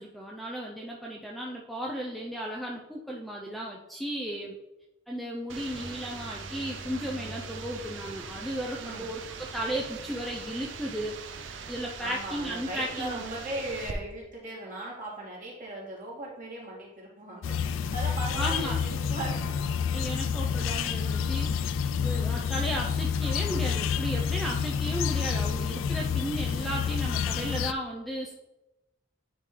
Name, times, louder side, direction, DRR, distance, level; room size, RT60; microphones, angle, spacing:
voice 1, 0.0-4.6 5.1-13.2 18.4-18.8 19.9-28.3, equal, ahead, -2 dB, 0.4 m, -35 dB
sound 1, 5.5-13.9, right 5 dB, 70° right, 0.6 m, -42 dB
sound 2, 5.7-11.2, equal, 45° left, 1.4 m, -48 dB
voice 2, 12.0-19.9, right 2 dB, 40° right, -6 dB, 2.2 m, -38 dB
sound 3, 17.4-27.7, left 7 dB, 80° left, 0.3 m, -29 dB
9.6 x 3.7 x 3.2 m, 0.97 s
head